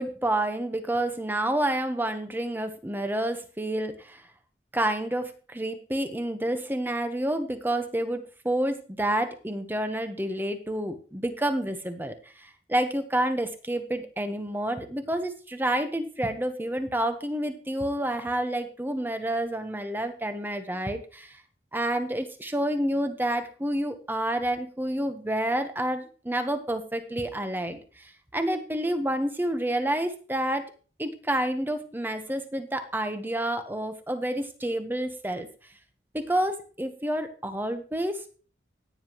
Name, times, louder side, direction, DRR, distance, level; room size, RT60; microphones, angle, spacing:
voice 1, 0.0-4.2 4.7-21.4 21.7-30.7 31.0-35.5 36.1-38.3, right 1 dB, 10° right, 8 dB, 1.0 m, -29 dB
15.0 x 9.6 x 3.1 m, 0.39 s
head